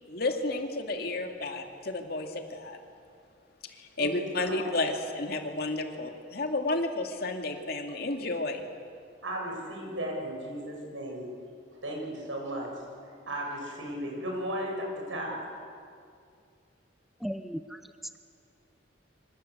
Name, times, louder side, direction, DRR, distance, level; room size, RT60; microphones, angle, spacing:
voice 1, 0.1-2.8 3.7-8.6, left 2 dB, 55° left, 4 dB, 2.4 m, -32 dB
voice 2, 4.0-4.6 9.2-11.3 11.8-12.7 13.3-15.4, equal, 85° right, 0 dB, 7.8 m, -35 dB
voice 3, 17.2-18.2, equal, ahead, 10 dB, 0.6 m, -37 dB
27.5 x 25.5 x 8.1 m, 2.4 s
head